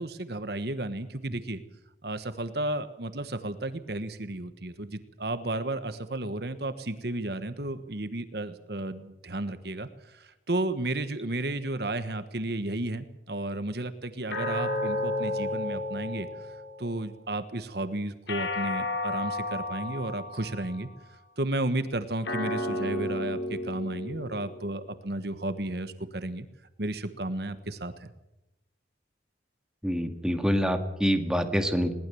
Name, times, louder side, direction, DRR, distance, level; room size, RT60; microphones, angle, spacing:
voice 1, 0.0-1.6 2.0-20.9 21.4-26.5 26.8-28.1, right 2 dB, 55° right, 11 dB, 1.4 m, -33 dB
sound 1, 14.3-16.9 18.3-20.8 22.2-24.9, left 1 dB, 75° left, 5.8 m, -32 dB
voice 2, 29.8-31.9, equal, 5° right, 5 dB, 2.1 m, -26 dB
21.5 x 19.0 x 7.1 m, 0.95 s
head